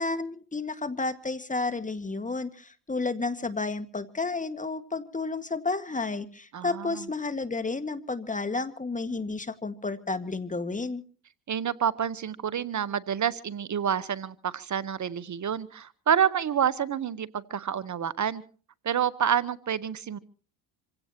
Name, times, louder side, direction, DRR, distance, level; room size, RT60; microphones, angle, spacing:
voice 1, 0.0-11.0, left 3 dB, 15° left, 12 dB, 1.7 m, -31 dB
voice 2, 6.5-7.0 11.5-18.4 18.8-20.2, right 8 dB, 40° right, 18 dB, 1.1 m, -28 dB
26.5 x 17.0 x 2.9 m, 0.41 s
supercardioid pair, 75°, 46 cm